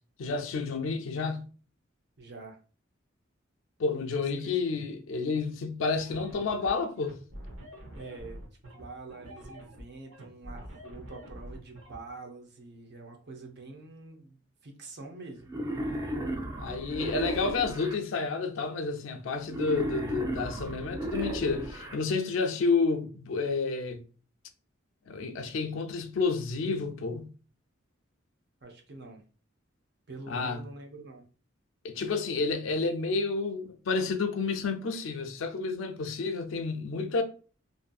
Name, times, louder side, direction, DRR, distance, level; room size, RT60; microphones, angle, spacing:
voice 1, 0.2-1.4 3.8-7.2 16.6-24.0 25.1-27.3 30.3-30.6 31.8-37.2, left 4 dB, 80° left, 0.4 m, -30 dB
voice 2, 2.2-2.6 4.4-4.5 7.9-8.4 8.7-15.5 28.6-29.2 30.1-31.2, right 3 dB, 55° right, 0.6 m, -46 dB
sound 1, 6.0-12.0, equal, 85° right, 0.8 m, -46 dB
Wild animals, 15.5-18.0 19.5-22.0, right 1 dB, 15° right, 0.3 m, -34 dB
2.6 x 2.6 x 2.2 m
head